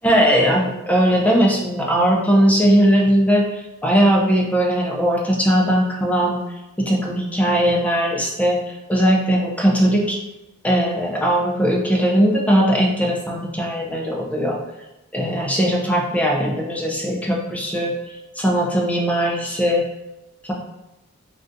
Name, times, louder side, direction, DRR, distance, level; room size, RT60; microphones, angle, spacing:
voice 1, 0.0-6.4 6.8-8.6 8.9-10.2 10.6-14.6 15.1-17.9 18.3-19.8, equal, 5° left, -1 dB, 0.4 m, -19 dB
3.8 x 2.3 x 2.5 m, 1.0 s
head